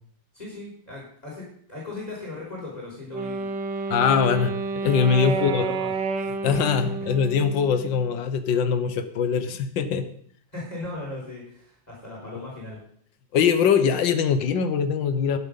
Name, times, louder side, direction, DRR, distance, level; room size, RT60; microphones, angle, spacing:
voice 1, 0.3-3.4 4.4-4.5 5.3-5.9 10.5-12.8, left 2 dB, 20° left, -5 dB, 5.4 m, -37 dB
Wind instrument woodwind instrument, 3.1-8.2, right 4 dB, 80° right, 1.8 m, -30 dB
voice 2, 3.9-4.5 4.8-5.7 6.4-10.1 13.3-15.4, left 6 dB, 85° left, 10 dB, 1.8 m, -22 dB
12.0 x 10.5 x 5.4 m, 0.64 s
omnidirectional pair, 2.0 m